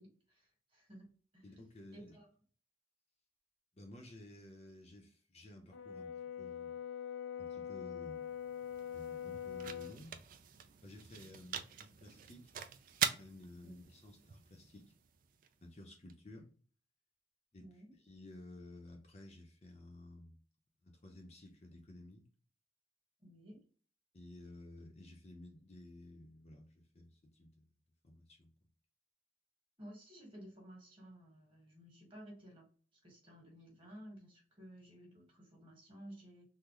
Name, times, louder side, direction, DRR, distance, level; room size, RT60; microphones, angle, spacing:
voice 1, 0.0-1.4 1.9-2.3 11.1-11.4 13.6-13.9 17.6-17.9 23.2-23.6 29.8-32.7 33.0-36.5, equal, 30° right, 1.4 m, -55 dB
voice 2, 1.4-2.2 3.7-6.8 7.3-8.3 8.7-10.2 10.8-12.5 13.2-14.9 15.6-16.5 17.5-17.7 18.0-20.4 20.8-22.2 24.1-27.7 28.0-28.5, left 1 dB, 35° left, 0.6 m, -54 dB
Brass instrument, 5.7-10.0, left 9 dB, 90° left, 0.3 m, -43 dB
sound 1, 8.0-16.1, right 8 dB, 45° right, 0.3 m, -44 dB
3.7 x 2.1 x 3.0 m
head